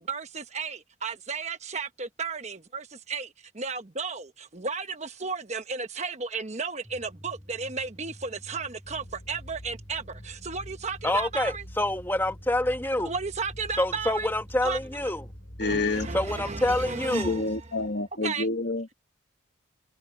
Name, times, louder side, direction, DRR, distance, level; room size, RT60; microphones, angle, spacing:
voice 1, 0.1-11.6 13.0-14.3 14.6-14.8 15.6-17.6 18.2-18.5, right 4 dB, 35° right, 1.1 m, -34 dB
sound 1, 6.8-17.3, equal, 10° right, 7.2 m, -49 dB
sound 2, 8.8-16.9, equal, 70° left, 5.1 m, -47 dB
voice 2, 11.0-13.1 13.8-15.2 16.1-17.4, left 1 dB, 10° left, 1.4 m, -27 dB
voice 3, 15.6-16.1 17.1-18.9, left 2 dB, 50° left, 1.4 m, -28 dB
head